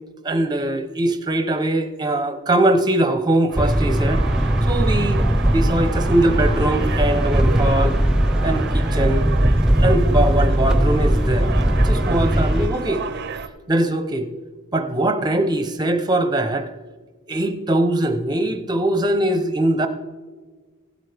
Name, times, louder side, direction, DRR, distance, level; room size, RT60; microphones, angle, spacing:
voice 1, 0.2-4.2 4.7-5.2 5.5-8.0 8.4-9.2 9.8-11.5 11.7-13.1 13.7-14.3 14.7-16.7 17.3-19.9, right 1 dB, 20° right, 8 dB, 0.8 m, -21 dB
sound 1, 3.5-13.5, right 5 dB, 50° right, 0.6 m, -32 dB
sound 2, 3.6-12.7, right 1 dB, 5° right, 0.3 m, -19 dB
16.0 x 8.2 x 3.5 m, 1.4 s
head